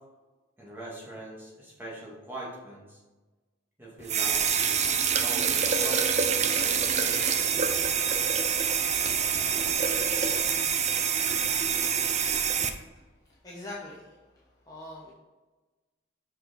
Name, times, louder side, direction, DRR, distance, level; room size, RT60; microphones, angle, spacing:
voice 1, 0.6-3.0 3.8-7.2, right 1 dB, 10° right, -6 dB, 2.2 m, -42 dB
sound 1, 4.1-12.7, right 7 dB, 35° right, 0.5 m, -26 dB
voice 2, 13.4-14.2 14.7-15.1, left 2 dB, 20° left, -6 dB, 1.0 m, -41 dB
6.1 x 5.4 x 4.0 m, 1.2 s
head